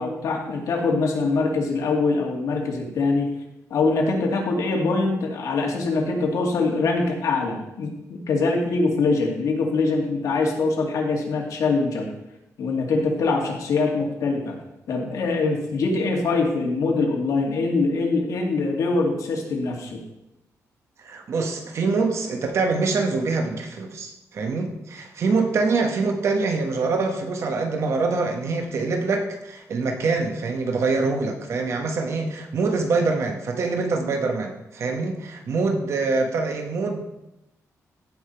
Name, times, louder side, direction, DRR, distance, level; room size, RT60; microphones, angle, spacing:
voice 1, 0.0-3.3 3.7-12.1 12.6-14.6 14.9-20.0, left 3 dB, 75° left, 0 dB, 2.3 m, -23 dB
voice 2, 21.0-37.0, right 3 dB, 55° right, 4 dB, 1.2 m, -24 dB
15.0 x 5.7 x 4.5 m, 0.88 s
wide cardioid pair, 175°, 6 cm